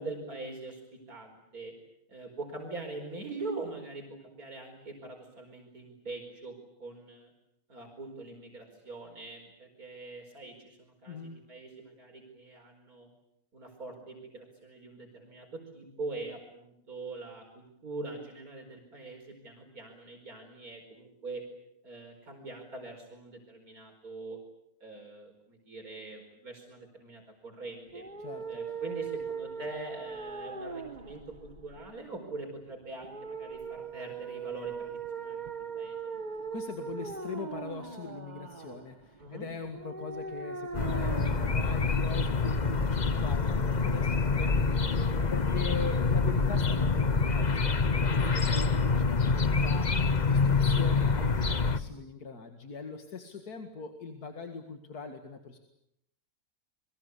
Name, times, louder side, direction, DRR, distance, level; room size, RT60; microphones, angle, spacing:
voice 1, 0.0-1.7 2.1-7.3 7.7-13.1 13.5-21.4 21.8-24.4 24.8-28.0 28.5-36.0 39.2-39.5 45.2-45.4, right 3 dB, 70° right, 2 dB, 5.3 m, -43 dB
sound 1, 27.9-42.9, right 5 dB, 30° right, 1.5 m, -40 dB
voice 2, 36.5-55.6, left 5 dB, 85° left, 6 dB, 2.5 m, -41 dB
sound 2, 40.7-51.8, left 4 dB, 30° left, 1.1 m, -26 dB
29.5 x 23.0 x 8.4 m, 0.79 s
omnidirectional pair, 1.6 m